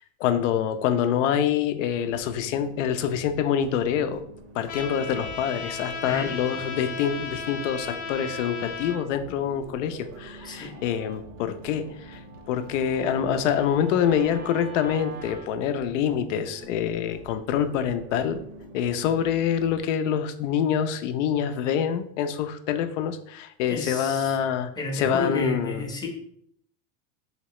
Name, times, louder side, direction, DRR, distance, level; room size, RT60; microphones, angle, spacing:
voice 1, 0.0-4.2 4.5-18.4 18.7-25.9, left 8 dB, 80° left, 9 dB, 0.5 m, -26 dB
sound 1, 2.0-19.8, right 1 dB, 60° right, 0.7 m, -46 dB
Trumpet, 4.7-9.0, left 4 dB, 50° left, 0.7 m, -35 dB
Guitar, 10.0-15.5, right 6 dB, 25° right, 0.4 m, -46 dB
voice 2, 23.7-24.3 24.8-26.1, left 3 dB, 10° left, 1 dB, 0.6 m, -31 dB
3.1 x 2.8 x 2.9 m, 0.67 s
supercardioid pair, 125°, 37 cm